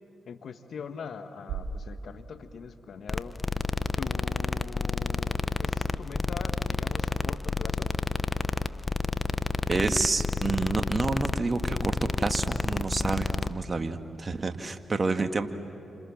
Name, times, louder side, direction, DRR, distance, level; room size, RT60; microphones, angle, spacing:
voice 1, 0.2-3.4 4.0-7.9, left 6 dB, 70° left, 8 dB, 1.5 m, -42 dB
sound 1, 1.5-3.6, right 4 dB, 90° right, 1.6 m, -40 dB
sound 2, 3.1-13.5, left 3 dB, 30° left, 1.1 m, -29 dB
voice 2, 9.7-15.5, right 3 dB, 40° right, 7 dB, 2.0 m, -29 dB
29.0 x 27.0 x 7.4 m, 2.8 s
hypercardioid pair, 40°, 0 cm